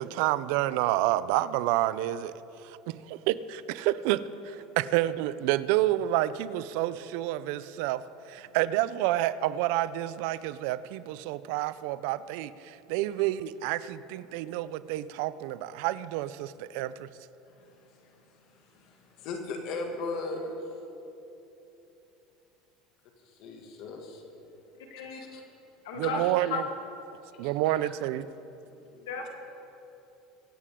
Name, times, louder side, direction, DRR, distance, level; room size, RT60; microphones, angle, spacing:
voice 1, 0.0-2.3 2.6-17.1 25.9-26.6 27.4-28.3, right 14 dB, 75° right, 16 dB, 0.5 m, -29 dB
voice 2, 17.5-20.6 23.2-24.2 24.9-25.4 26.0-26.6 27.4-27.8 28.7-29.3, left 3 dB, 60° left, 3 dB, 2.1 m, -39 dB
voice 3, 25.9-26.2 26.5-26.6 29.1-29.3, left 5 dB, 90° left, 2 dB, 1.8 m, -33 dB
24.0 x 8.5 x 3.7 m, 2.9 s
supercardioid pair, 110°, 0 cm